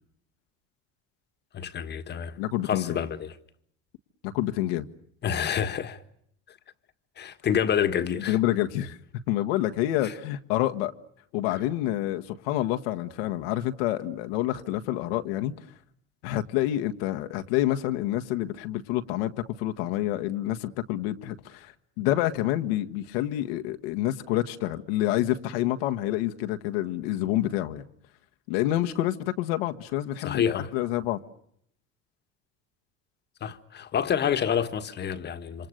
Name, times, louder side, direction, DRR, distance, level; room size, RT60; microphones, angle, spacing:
voice 1, 1.5-2.4 2.7-3.4 5.2-6.0 7.2-8.4 30.2-30.7 33.4-35.7, left 8 dB, 35° left, 1.7 m, -28 dB
voice 2, 2.4-3.0 4.2-4.9 8.3-9.0 9.3-10.9 11.3-15.5 16.2-27.8 28.5-31.2, left 14 dB, 85° left, 1.6 m, -28 dB
28.0 x 26.5 x 6.6 m
supercardioid pair, 120°, 29 cm